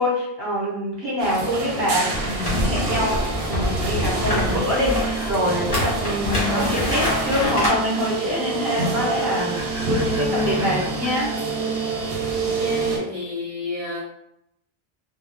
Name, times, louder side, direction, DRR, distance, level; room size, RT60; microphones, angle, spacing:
voice 1, 0.0-11.3, left 1 dB, 55° right, -5 dB, 1.0 m, -25 dB
sound 1, 1.2-13.0, right 3 dB, 70° right, 0.8 m, -27 dB
sound 2, 2.1-7.7, left 1 dB, 30° left, 1.1 m, -26 dB
sound 3, 2.7-6.4 6.7-6.8 8.2-11.3, equal, 5° right, 0.7 m, -39 dB
voice 2, 12.3-14.0, left 2 dB, 50° left, -5 dB, 0.4 m, -31 dB
2.2 x 2.1 x 3.3 m, 0.82 s
omnidirectional pair, 1.1 m